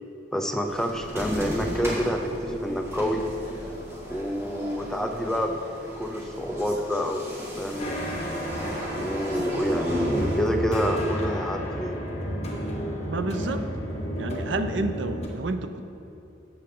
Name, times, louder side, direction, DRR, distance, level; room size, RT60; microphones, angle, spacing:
voice 1, 0.3-3.2 4.1-5.6 6.0-8.1 8.9-12.0, equal, 5° left, 4 dB, 0.6 m, -28 dB
sound 1, 0.6-10.4, equal, 15° right, 1.8 m, -35 dB
sound 2, 7.8-15.3, equal, 35° left, 1.4 m, -32 dB
voice 2, 13.1-13.7 14.2-15.8, right 2 dB, 75° right, 8 dB, 0.7 m, -30 dB
14.0 x 7.9 x 3.8 m, 2.9 s
head